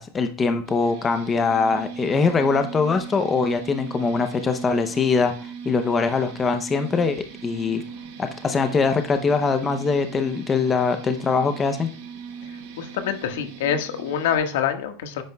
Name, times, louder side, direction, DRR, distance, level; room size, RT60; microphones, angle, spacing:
voice 1, 0.0-7.8 8.2-11.9, left 4 dB, 15° left, 7 dB, 0.6 m, -22 dB
sound 1, 0.7-14.4, right 6 dB, 65° right, 2.9 m, -39 dB
voice 2, 12.8-15.2, left 8 dB, 80° left, 6 dB, 1.5 m, -25 dB
10.0 x 9.4 x 2.3 m, 0.40 s
supercardioid pair, 160°, 0 cm